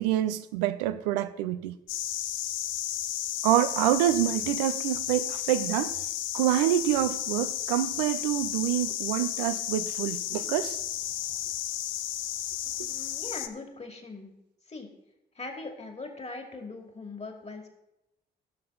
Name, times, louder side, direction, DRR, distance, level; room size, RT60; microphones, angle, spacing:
voice 1, 0.0-1.8 3.4-6.0 6.3-10.8, right 13 dB, 80° right, 0.5 m, -27 dB
sound 1, 1.9-13.5, left 12 dB, 70° left, 0.6 m, -33 dB
voice 2, 12.6-14.3 14.7-14.9 15.3-17.7, left 3 dB, 30° left, 2.5 m, -41 dB
16.0 x 6.6 x 3.9 m
figure-of-eight pair, 40°, 21 cm